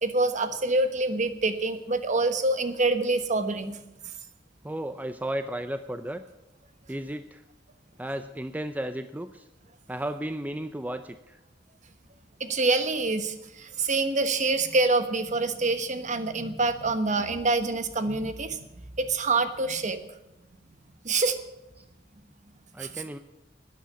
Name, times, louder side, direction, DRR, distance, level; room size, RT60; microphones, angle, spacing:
voice 1, 0.0-3.8 12.4-18.7 19.0-20.0 21.0-21.4 22.8-22.9, right 3 dB, 40° right, 10 dB, 1.2 m, -26 dB
voice 2, 4.6-6.2 6.9-7.4 8.0-9.5 9.9-11.4 21.8-21.9 22.7-23.2, right 1 dB, 10° right, 9 dB, 0.5 m, -34 dB
12.0 x 10.0 x 8.4 m, 0.96 s
head